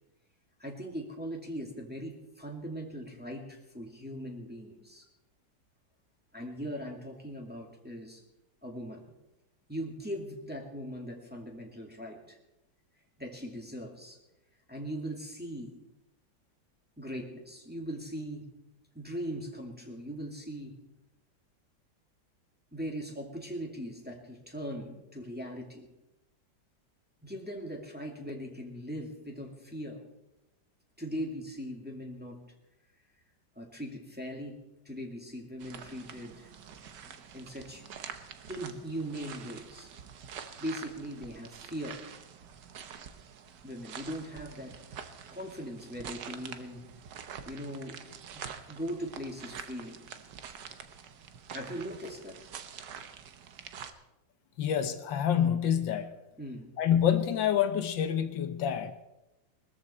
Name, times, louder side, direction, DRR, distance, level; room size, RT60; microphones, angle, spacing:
voice 1, 0.6-5.1 6.3-8.2 8.6-9.0 9.7-12.4 13.2-14.2 14.7-15.8 17.0-18.4 18.9-20.7 22.7-25.9 27.2-30.0 31.0-32.4 33.6-34.6 34.8-36.5 37.0-37.8 38.5-39.9 40.6-42.0 43.6-44.8 45.3-46.9 47.5-48.0 48.3-50.1 51.5-52.4 56.4-56.7, equal, 5° right, 0 dB, 2.2 m, -40 dB
sound 1, 35.6-53.9, right 7 dB, 65° right, 1.5 m, -46 dB
voice 2, 54.6-56.1 56.8-58.9, left 9 dB, 80° left, 9 dB, 1.6 m, -27 dB
20.5 x 13.5 x 4.3 m, 0.96 s
omnidirectional pair, 2.0 m